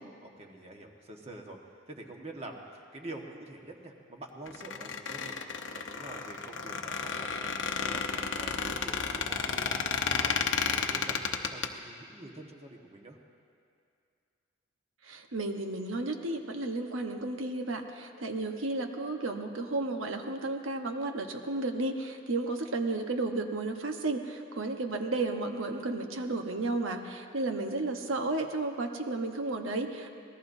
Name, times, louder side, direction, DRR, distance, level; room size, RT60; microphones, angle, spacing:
voice 1, 0.2-1.6 1.9-9.8 10.1-13.2, right 2 dB, 30° right, 1 dB, 1.4 m, -46 dB
Squeak, 4.5-11.7, left 5 dB, 65° left, 0.8 m, -32 dB
voice 2, 15.0-30.1, right 2 dB, 90° right, 4 dB, 1.2 m, -33 dB
26.0 x 19.5 x 2.7 m, 2.4 s
head